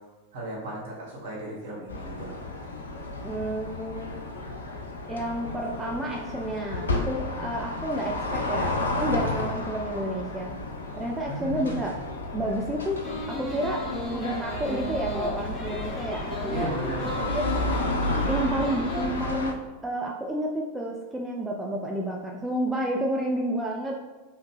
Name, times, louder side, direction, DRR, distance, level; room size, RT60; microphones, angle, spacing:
voice 1, 0.3-2.3 11.3-11.8 16.5-17.3, right 1 dB, 50° right, -5 dB, 1.4 m, -35 dB
sound 1, 1.9-19.5, left 2 dB, 70° left, 0.4 m, -32 dB
voice 2, 3.2-4.1 5.1-10.6 10.9-12.0 12.3-16.8 17.3-17.4 18.2-19.6 19.8-24.0, right 1 dB, 10° right, -1 dB, 0.3 m, -30 dB
sound 2, 13.0-19.2, left 1 dB, 5° left, 0.9 m, -34 dB
3.1 x 2.7 x 3.3 m, 1.2 s
figure-of-eight pair, 90°, 0 cm